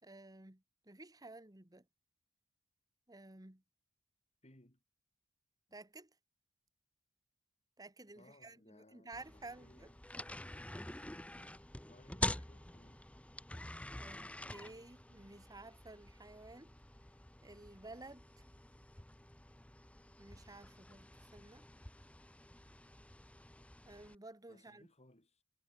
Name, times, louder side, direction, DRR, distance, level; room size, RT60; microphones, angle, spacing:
voice 1, 0.0-1.8 3.1-3.6 5.7-6.1 7.8-9.9 14.0-16.7 17.4-18.4 20.2-21.7 23.8-24.9, right 2 dB, 15° right, 1.6 m, -54 dB
voice 2, 4.4-4.8 8.1-10.0 11.9-13.1 24.5-25.4, left 1 dB, 30° left, 4.8 m, -64 dB
sound 1, 9.1-24.1, left 1 dB, 5° left, 0.8 m, -47 dB
head